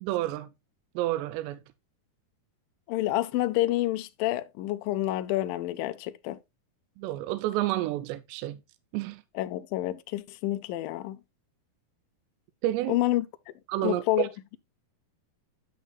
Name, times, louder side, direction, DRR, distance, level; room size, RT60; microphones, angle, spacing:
voice 1, 0.0-0.5 1.0-1.6 7.0-8.6 8.9-9.2 12.6-13.0 13.7-14.3, right 15 dB, 90° right, 2.7 m, -29 dB
voice 2, 2.9-6.4 9.4-11.2 12.9-13.3 13.8-14.3, left 15 dB, 85° left, 2.0 m, -28 dB
11.0 x 6.4 x 2.3 m
omnidirectional pair, 4.8 m